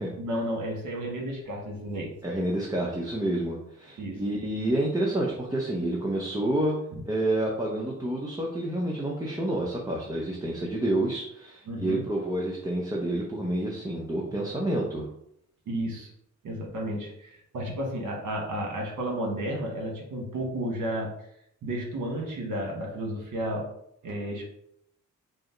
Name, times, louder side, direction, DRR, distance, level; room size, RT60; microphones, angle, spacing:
voice 1, 0.2-2.1 4.0-4.2 11.7-12.0 15.7-16.1 16.4-21.1 21.6-23.7 24.0-24.5, right 1 dB, 70° right, 0 dB, 1.3 m, -32 dB
voice 2, 2.2-6.8 7.1-15.1, right 1 dB, 10° right, -3 dB, 0.7 m, -29 dB
4.9 x 2.1 x 3.8 m, 0.75 s
cardioid pair, 90°, 32 cm